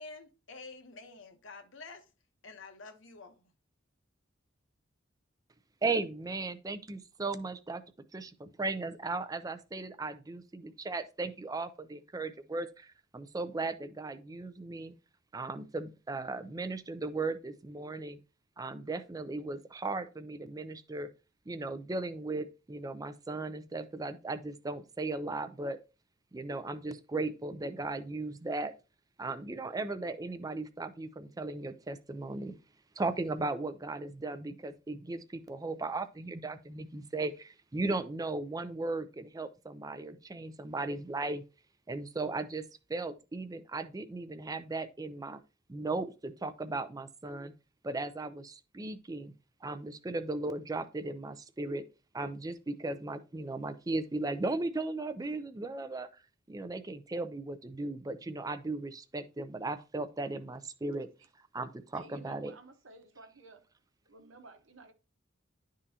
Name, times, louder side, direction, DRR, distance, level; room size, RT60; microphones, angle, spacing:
voice 1, 0.0-2.0 2.4-3.4, left 3 dB, 75° left, 1.0 m, -48 dB
voice 2, 5.8-7.8 8.1-14.9 15.3-18.2 18.6-21.1 21.5-25.8 26.3-28.7 29.2-32.6 33.0-41.4 41.9-42.6 42.9-45.4 45.7-47.5 47.8-49.3 49.6-51.8 52.1-56.1 56.5-61.1 61.5-62.5, right 3 dB, 20° right, 0.5 m, -36 dB
voice 3, 61.9-63.7 64.1-64.9, right 3 dB, 80° right, 1.0 m, -53 dB
11.0 x 3.7 x 2.8 m
head